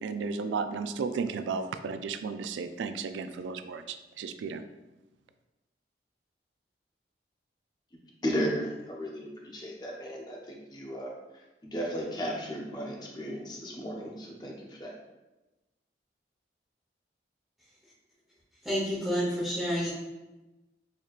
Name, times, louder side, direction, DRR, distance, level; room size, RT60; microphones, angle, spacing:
voice 1, 0.0-4.6, right 5 dB, 85° right, 10 dB, 0.3 m, -34 dB
voice 2, 7.9-15.0, equal, 25° left, -1 dB, 0.6 m, -35 dB
voice 3, 18.6-19.9, equal, ahead, -10 dB, 0.9 m, -29 dB
4.3 x 3.2 x 2.4 m, 1.1 s
head